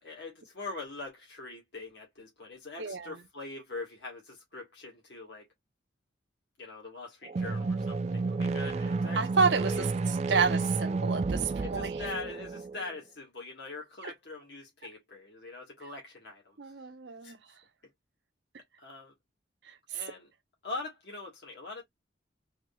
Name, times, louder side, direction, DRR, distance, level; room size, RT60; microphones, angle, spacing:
voice 1, 0.0-5.4 6.6-9.9 11.6-16.7 17.2-17.3 18.8-19.1 19.9-20.3 20.6-21.8, left 3 dB, 60° left, 1.6 m, -43 dB
voice 2, 2.8-3.1 9.2-12.0 14.0-14.1 16.6-17.4 19.6-19.8, right 5 dB, 70° right, 0.7 m, -30 dB
sound 1, 7.3-12.9, right 3 dB, 35° right, 0.3 m, -31 dB
3.7 x 3.0 x 2.3 m
head